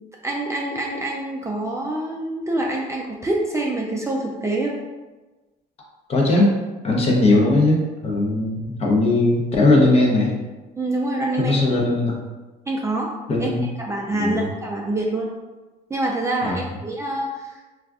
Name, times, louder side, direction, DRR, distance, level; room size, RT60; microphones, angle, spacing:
voice 1, 0.2-4.8 10.8-11.6 12.7-13.1 13.4-13.5 13.8-15.4 15.9-17.6, right 2 dB, 15° right, -2 dB, 0.3 m, -26 dB
voice 2, 6.1-6.5 6.8-10.3 11.4-12.2 13.3-13.7 14.1-14.5 16.4-16.6, left 2 dB, 35° left, -1 dB, 0.7 m, -19 dB
2.4 x 2.2 x 3.5 m, 1.2 s
cardioid pair, 110°, 17 cm